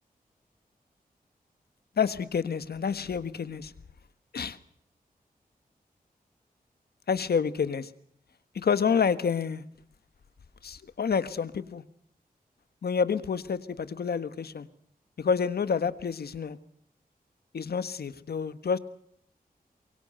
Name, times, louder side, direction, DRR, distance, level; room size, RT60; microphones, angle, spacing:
voice 1, 2.0-3.7 4.3-4.6 7.1-7.9 8.5-9.6 10.6-11.8 12.8-14.7 15.2-16.6 17.5-18.8, left 6 dB, 90° left, 13 dB, 1.5 m, -28 dB
24.0 x 23.0 x 6.6 m, 0.69 s
wide cardioid pair, 90°, 16 cm